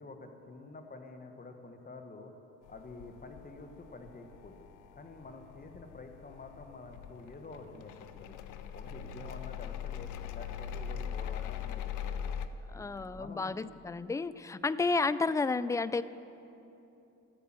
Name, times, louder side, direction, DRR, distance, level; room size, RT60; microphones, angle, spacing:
voice 1, 0.0-2.3 2.7-4.5 5.0-7.9 8.2-8.3 8.7-11.8 12.1-12.3 12.7-12.8 13.1-13.5, left 3 dB, 30° left, 5 dB, 1.3 m, -48 dB
sound 1, 2.7-12.5, left 8 dB, 85° left, 0.7 m, -41 dB
voice 2, 12.7-16.0, left 4 dB, 10° left, 16 dB, 0.3 m, -31 dB
14.0 x 8.6 x 7.5 m, 2.9 s
cardioid pair, 90°, 30 cm